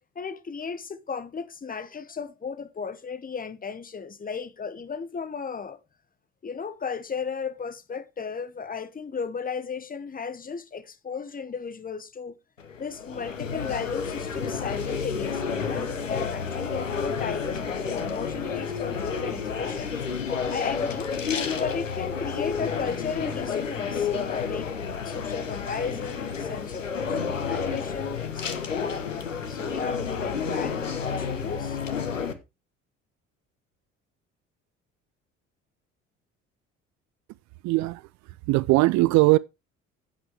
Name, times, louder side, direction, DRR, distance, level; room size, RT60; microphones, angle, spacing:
voice 1, 0.1-5.8 6.4-12.4 12.8-19.9 20.5-21.1 21.5-28.9 29.5-31.8, left 5 dB, 25° left, 1.3 m, -35 dB
sound 1, 12.6-32.3, left 6 dB, 90° left, 1.2 m, -30 dB
voice 2, 37.6-38.0 38.5-39.4, right 21 dB, 50° right, 0.4 m, -20 dB
10.5 x 8.6 x 3.4 m
figure-of-eight pair, 55°, 37 cm